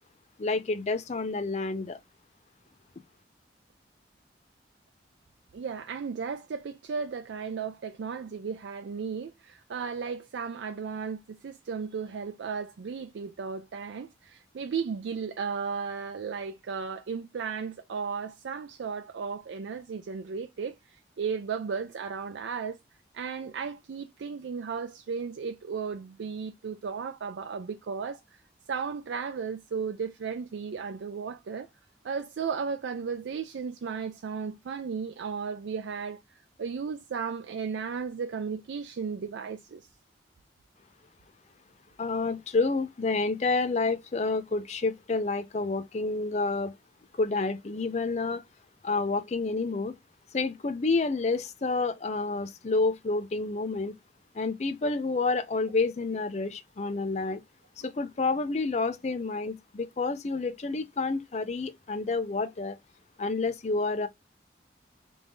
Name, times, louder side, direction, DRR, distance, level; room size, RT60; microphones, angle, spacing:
voice 1, 0.4-2.0 42.0-46.7 47.1-48.4 48.8-49.9 50.3-54.0 54.3-57.4 57.8-62.8 63.2-64.1, left 3 dB, 35° left, 0.4 m, -29 dB
voice 2, 5.5-22.8 23.1-28.4 28.7-31.7 32.0-36.2 36.6-39.9, right 6 dB, 80° right, 0.4 m, -35 dB
3.4 x 2.6 x 3.4 m
head